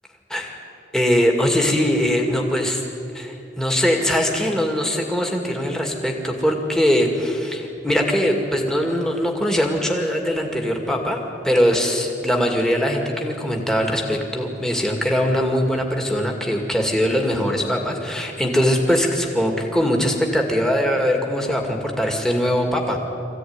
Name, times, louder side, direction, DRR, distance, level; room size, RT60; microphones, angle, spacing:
voice 1, 0.9-2.8 3.1-11.2 11.4-23.0, equal, 5° left, 1 dB, 2.2 m, -21 dB
24.0 x 15.5 x 9.7 m, 2.7 s
head